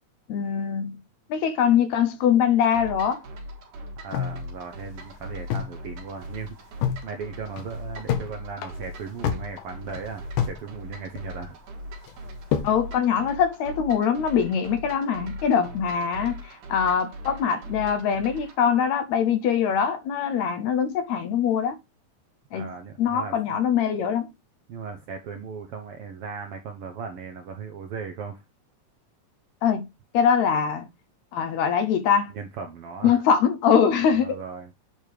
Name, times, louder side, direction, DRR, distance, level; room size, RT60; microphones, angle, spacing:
voice 1, 0.3-1.0 1.3-3.2 12.6-21.8 22.5-22.7 23.0-24.3 29.6-29.9 30.1-30.9 31.3-32.3 33.0-34.4, left 7 dB, 75° left, 1.9 m, -23 dB
sound 1, 2.7-18.6, equal, 85° right, 3.2 m, -40 dB
voice 2, 4.0-6.6 7.0-11.6 22.5-23.6 24.7-28.4 32.3-33.2 34.1-34.7, right 6 dB, 70° right, 1.4 m, -37 dB
sound 2, 4.1-5.8 6.1-6.2 6.5-7.0 7.4-8.3 8.6-10.6 10.9-11.6 12.1-12.8, left 9 dB, 90° left, 2.6 m, -28 dB
8.8 x 3.4 x 4.5 m
omnidirectional pair, 3.5 m